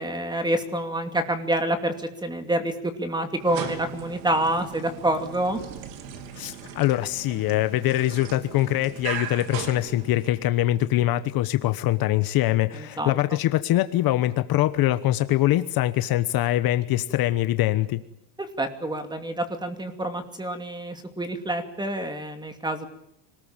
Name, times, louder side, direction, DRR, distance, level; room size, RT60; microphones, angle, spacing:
voice 1, 0.0-5.6 12.7-13.2 18.4-22.9, right 1 dB, 10° right, 8 dB, 2.6 m, -27 dB
sound 1, 3.3-10.5, right 8 dB, 85° right, 3.3 m, -38 dB
voice 2, 6.3-18.0, left 15 dB, 45° left, 12 dB, 1.1 m, -23 dB
26.0 x 19.5 x 8.9 m, 0.81 s
cardioid pair, 150°, 48 cm